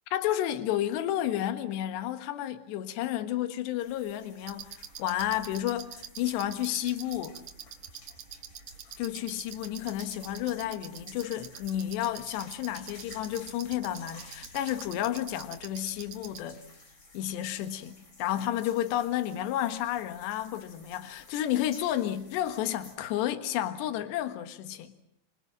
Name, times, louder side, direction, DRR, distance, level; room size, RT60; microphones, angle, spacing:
voice 1, 0.1-4.7 5.0-7.4 9.0-16.6 17.1-25.0, left 12 dB, 65° left, 3.3 m, -31 dB
sound 1, 3.8-23.0, left 2 dB, 30° left, 3.4 m, -54 dB
sound 2, 4.4-16.4, right 8 dB, 65° right, 1.9 m, -46 dB
26.5 x 26.0 x 7.5 m
omnidirectional pair, 5.8 m